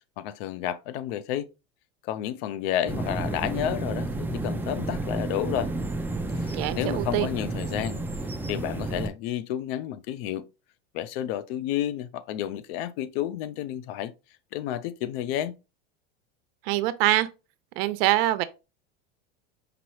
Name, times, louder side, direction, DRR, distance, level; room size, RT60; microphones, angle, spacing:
voice 1, 0.2-1.5 2.0-5.7 6.4-8.0 8.5-10.4 10.9-14.1 14.5-15.5, left 11 dB, 70° left, 0.6 m, -31 dB
sound 1, 2.9-9.1, right 2 dB, 5° right, 0.5 m, -31 dB
voice 2, 6.5-7.3 16.6-17.3 17.8-18.4, right 16 dB, 65° right, 0.7 m, -24 dB
5.1 x 3.0 x 3.1 m
supercardioid pair, 115°, 32 cm